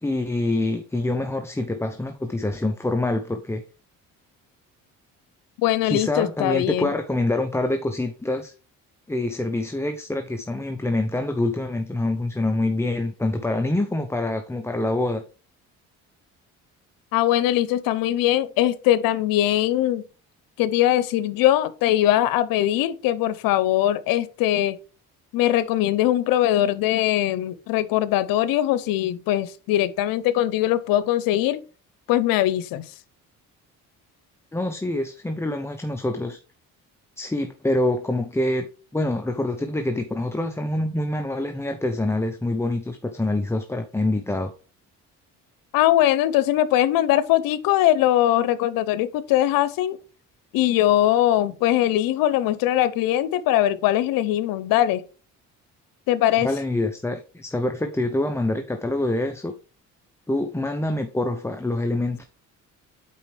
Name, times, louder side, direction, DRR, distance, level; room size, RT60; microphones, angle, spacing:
voice 1, 0.0-3.6 5.8-8.5 9.1-15.2 34.5-36.4 37.2-38.7 38.9-44.5 56.4-59.5 60.3-62.2, left 2 dB, 10° left, 0.6 m, -25 dB
voice 2, 5.6-6.9 17.1-20.0 20.6-24.8 25.3-31.6 32.1-32.9 45.7-50.0 50.5-55.0 56.1-56.5, left 13 dB, 90° left, 0.7 m, -21 dB
8.5 x 4.4 x 3.3 m
cardioid pair, 90°, 33 cm